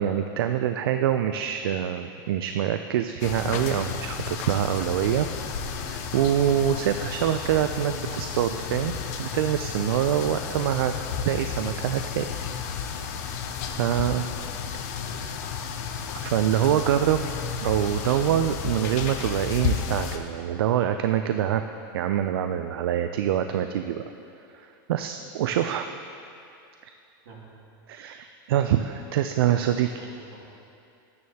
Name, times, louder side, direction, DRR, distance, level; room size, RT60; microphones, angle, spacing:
voice 1, 0.0-5.3 5.8-8.9 9.2-10.9 11.2-12.3 13.8-14.2 16.1-17.3 17.6-21.6 21.9-24.0 24.5-25.9 26.8-26.9 27.9-30.1, right 10 dB, 90° right, 8 dB, 0.4 m, -25 dB
sound 1, 3.2-20.2, left 6 dB, 45° left, 0.6 m, -32 dB
voice 2, 14.3-14.7 15.1-15.4 27.2-27.4 29.0-29.1 29.5-30.4, right 3 dB, 70° right, -5 dB, 2.5 m, -47 dB
12.5 x 9.5 x 2.8 m, 2.6 s
supercardioid pair, 175°, 12 cm